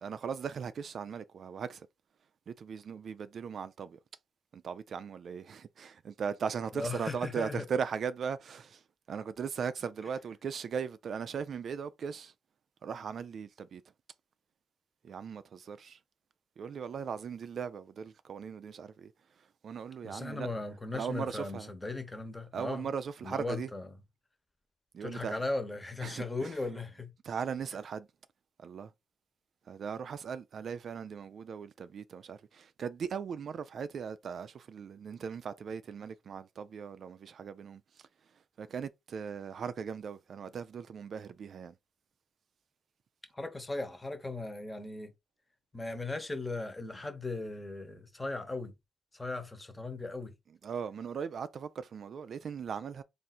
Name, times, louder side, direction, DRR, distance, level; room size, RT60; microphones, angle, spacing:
voice 1, 0.0-1.9 2.5-4.0 4.5-8.8 9.1-12.3 12.8-13.8 15.0-16.0 16.6-19.1 19.6-20.5 20.9-21.7 22.5-23.7 24.9-25.4 26.0-26.5 27.2-28.1 28.6-28.9 29.7-37.8 38.6-41.7 50.6-53.0, right 6 dB, 55° right, 0.4 m, -38 dB
voice 2, 6.7-7.6 20.0-22.9 23.2-23.9 25.0-27.1 43.3-45.1 45.7-48.7 49.1-50.3, left 2 dB, 15° left, 1.0 m, -37 dB
3.7 x 2.5 x 4.2 m
cardioid pair, 90°, 0 cm